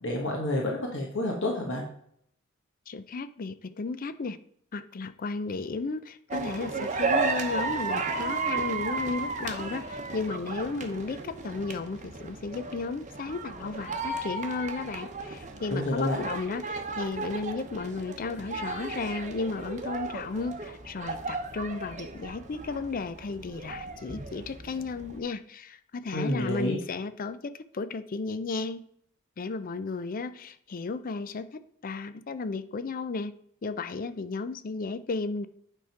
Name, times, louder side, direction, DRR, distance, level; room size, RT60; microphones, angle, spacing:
voice 1, 0.0-1.9 15.7-16.2 26.1-26.8, left 1 dB, 60° left, -1 dB, 1.4 m, -29 dB
voice 2, 2.9-4.4 4.7-28.8 29.4-33.3 33.6-35.5, left 4 dB, 40° left, 13 dB, 0.5 m, -34 dB
sound 1, 6.3-25.2, right 3 dB, 35° right, 0.9 m, -34 dB
8.9 x 3.6 x 5.7 m, 0.67 s
head